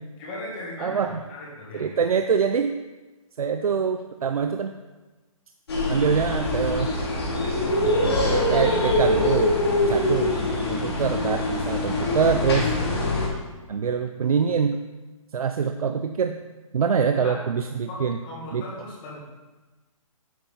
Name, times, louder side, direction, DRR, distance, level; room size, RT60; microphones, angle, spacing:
voice 1, 0.1-2.0 9.7-10.1 17.1-17.4 17.9-19.2, left 1 dB, 15° left, -5 dB, 1.8 m, -38 dB
voice 2, 0.8-1.2 1.7-2.8 3.4-4.8 5.9-6.9 8.0-10.3 10.7-12.7 13.7-14.8 15.3-16.4 16.7-18.2 18.5-18.6, right 6 dB, 80° right, 7 dB, 0.6 m, -24 dB
sound 1, 5.7-13.3, left 1 dB, 45° left, 2.6 m, -23 dB
9.3 x 8.1 x 4.0 m, 1.2 s
hypercardioid pair, 175°, 18 cm